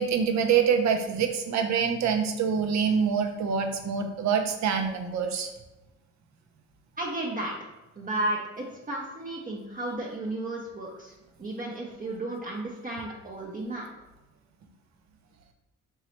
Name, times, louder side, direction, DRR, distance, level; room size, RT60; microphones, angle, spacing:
voice 1, 0.0-5.5, right 7 dB, 65° right, 5 dB, 0.7 m, -25 dB
voice 2, 7.0-7.5 8.0-11.1 11.4-13.9, right 2 dB, 30° right, -3 dB, 0.7 m, -33 dB
4.6 x 3.0 x 3.1 m, 1.0 s
cardioid pair, 90°, 30 cm